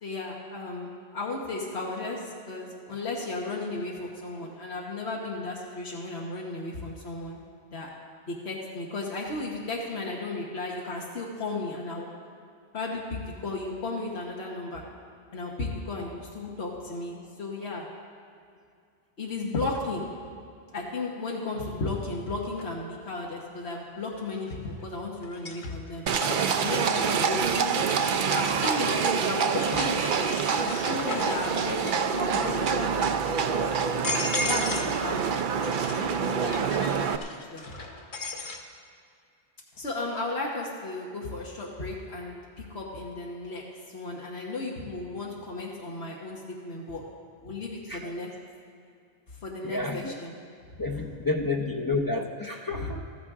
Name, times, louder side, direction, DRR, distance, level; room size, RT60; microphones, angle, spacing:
voice 1, 0.0-7.4 7.7-7.9 8.3-12.1 12.7-14.8 15.3-17.8 19.2-20.0 20.7-26.0 26.6-27.8 28.3-30.4 30.6-33.2 34.3-35.3 35.8-37.8 39.7-47.0 47.4-48.3 49.4-50.4, left 2 dB, 90° left, -3 dB, 1.5 m, -34 dB
sound 1, 22.6-22.7 24.4-24.8 25.2-29.0 29.5-32.1 32.4-32.9 33.5-33.6 33.9-35.0 35.3-38.6, left 2 dB, 50° left, 1.2 m, -36 dB
Livestock farm animals working animals, 26.1-37.2, right 6 dB, 60° right, 0.7 m, -26 dB
voice 2, 49.6-50.2 50.8-53.2, left 3 dB, 25° left, 1 dB, 0.6 m, -30 dB
14.5 x 14.0 x 3.7 m, 2.3 s
omnidirectional pair, 1.1 m